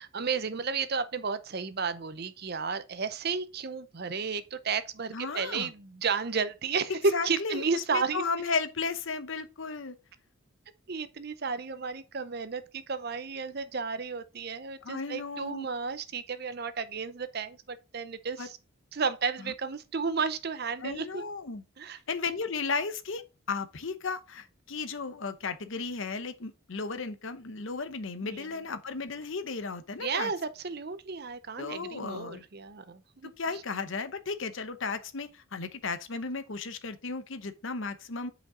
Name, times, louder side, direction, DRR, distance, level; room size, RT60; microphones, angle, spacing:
voice 1, 0.0-8.2 10.9-18.6 18.9-21.2 21.8-22.0 28.2-28.5 30.0-33.3, right 5 dB, 45° right, 0.6 m, -33 dB
voice 2, 5.1-5.7 7.1-10.0 14.8-15.7 18.4-18.5 19.4-19.5 20.8-21.6 22.1-30.3 31.6-32.4 33.4-38.3, left 4 dB, 65° left, 0.8 m, -34 dB
8.5 x 5.1 x 3.7 m
head